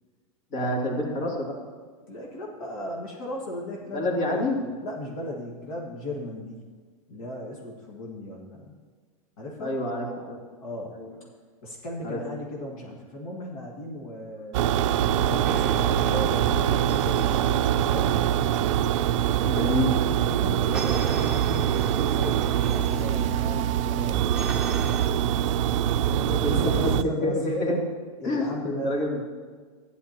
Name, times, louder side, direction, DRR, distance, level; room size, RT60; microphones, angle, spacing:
voice 1, 0.5-1.5 3.9-4.6 9.6-10.4 10.9-11.1 12.0-12.2 19.4-19.9 26.4-27.8 28.2-29.2, left 1 dB, 50° left, -1 dB, 2.6 m, -27 dB
voice 2, 2.1-6.6 7.1-8.7 9.4-9.7 10.6-10.9 11.6-14.8 15.1-18.1 20.2-24.4 26.1-27.3 28.2-29.2, left 1 dB, 70° left, -2 dB, 1.8 m, -36 dB
sound 1, 14.5-27.0, right 10 dB, 60° right, 0.4 m, -24 dB
sound 2, 15.4-18.6 20.7-25.1, right 3 dB, 5° right, 0.8 m, -38 dB
13.5 x 9.9 x 2.9 m, 1.5 s
supercardioid pair, 150°, 18 cm